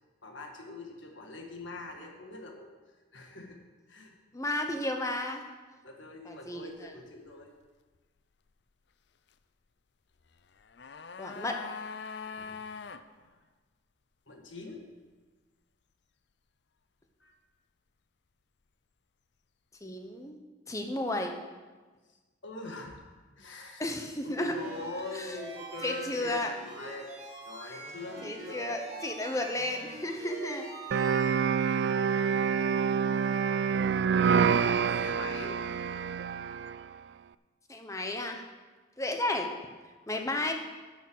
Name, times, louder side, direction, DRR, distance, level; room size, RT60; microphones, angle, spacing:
voice 1, 0.2-2.7 3.1-3.6 3.9-4.2 5.8-7.5 12.2-12.6 14.3-14.9 17.2-17.3 22.4-23.0 23.4-23.8 24.2-27.1 27.4-29.1 30.8-31.9 32.7-33.3 34.1-35.6 40.1-40.5, left 2 dB, 75° left, 3 dB, 1.7 m, -44 dB
voice 2, 4.3-5.4 6.2-6.9 11.2-11.6 19.8-20.4 20.7-21.3 23.8-24.5 25.1-25.3 25.8-26.5 28.2-30.7 37.7-38.4 39.0-39.5 40.1-40.5, left 1 dB, 15° left, 4 dB, 0.9 m, -33 dB
sound 1, 10.4-13.0 13.3-13.4, left 5 dB, 60° left, 0.5 m, -42 dB
sound 2, 24.4-31.2, right 2 dB, 35° right, 2.5 m, -44 dB
sound 3, 30.9-36.8, right 6 dB, 60° right, 0.3 m, -27 dB
11.0 x 7.0 x 6.2 m, 1.3 s
head